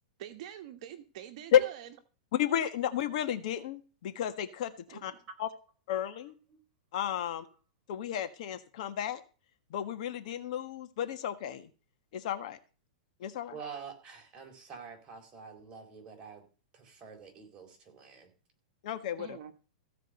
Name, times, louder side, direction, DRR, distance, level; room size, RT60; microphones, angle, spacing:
voice 1, 0.2-1.9 4.9-5.0 19.2-19.5, right 10 dB, 50° right, 1.4 m, -45 dB
voice 2, 2.3-5.1 5.4-5.5 5.9-6.3 6.9-7.4 7.9-9.2 9.7-11.7 12.1-12.6 13.2-13.5 18.8-19.4, left 10 dB, 55° left, 1.5 m, -32 dB
voice 3, 13.5-16.4 16.7-18.3, right 6 dB, 25° right, 4.1 m, -47 dB
15.5 x 5.2 x 7.8 m
hypercardioid pair, 145°, 4 cm